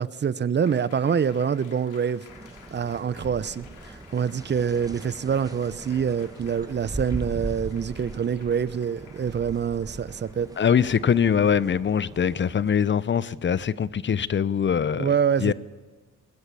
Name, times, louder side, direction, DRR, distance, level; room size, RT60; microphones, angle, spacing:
voice 1, 0.0-2.2 2.7-10.5 15.0-15.5, right 7 dB, 35° right, 0.8 m, -26 dB
Applause, 0.6-12.0, left 6 dB, 80° left, 3.4 m, -53 dB
sound 1, 2.3-12.7, right 2 dB, 10° right, 1.2 m, -40 dB
voice 2, 10.6-15.1 15.4-15.5, left 7 dB, 40° left, 0.8 m, -23 dB
21.5 x 21.0 x 8.4 m
cardioid pair, 90°, 30 cm